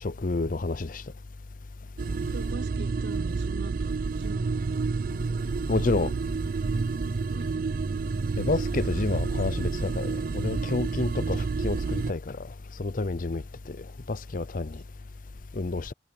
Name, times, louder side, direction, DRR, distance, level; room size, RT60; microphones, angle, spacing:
voice 1, 0.0-1.0 5.7-6.1 8.4-12.4 12.8-14.8 15.5-15.9, left 3 dB, 50° left, 0.7 m, -29 dB
sound 1, 2.0-12.1, right 4 dB, 55° right, 0.4 m, -29 dB
voice 2, 2.3-5.0 7.3-7.5, right 3 dB, 70° right, 0.8 m, -42 dB
head